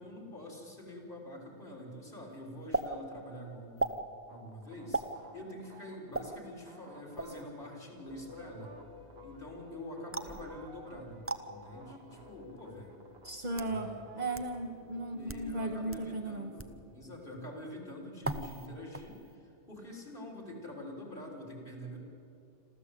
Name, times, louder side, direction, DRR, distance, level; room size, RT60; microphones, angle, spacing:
voice 1, 0.0-5.0 5.3-8.7 9.2-12.9 13.6-14.0 15.1-22.0, left 1 dB, 55° left, 0 dB, 4.0 m, -46 dB
sound 1, 2.7-2.9 3.8-4.0 4.9-5.1 6.1-6.3 7.2-7.4 10.1-10.4 11.2-11.4 12.4-12.5 13.3-13.7 14.3-14.4 15.2-15.5 15.9-16.0 16.6-16.8 18.2-18.7 18.9-19.3, right 2 dB, 15° right, 0.7 m, -35 dB
sound 2, 4.3-14.6, right 4 dB, 65° right, 1.6 m, -56 dB
sound 3, 8.1-16.3, left 3 dB, 35° left, 1.9 m, -54 dB
voice 2, 13.2-16.6, right 2 dB, 40° right, 2 dB, 1.2 m, -36 dB
27.0 x 14.0 x 8.3 m, 2.6 s
omnidirectional pair, 1.1 m